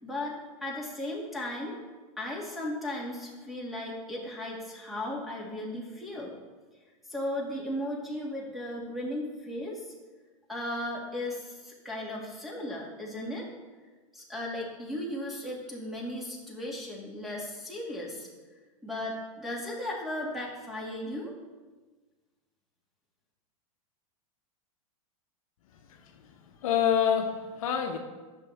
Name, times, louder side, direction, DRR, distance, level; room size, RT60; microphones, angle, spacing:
voice 1, 0.0-1.8 2.2-6.3 7.1-9.9 10.5-13.5 14.1-18.3 18.8-21.3, left 1 dB, ahead, -3 dB, 2.0 m, -36 dB
voice 2, 26.6-28.0, left 8 dB, 70° left, 4 dB, 0.9 m, -27 dB
9.7 x 6.5 x 3.4 m, 1.3 s
hypercardioid pair, 115°, 18 cm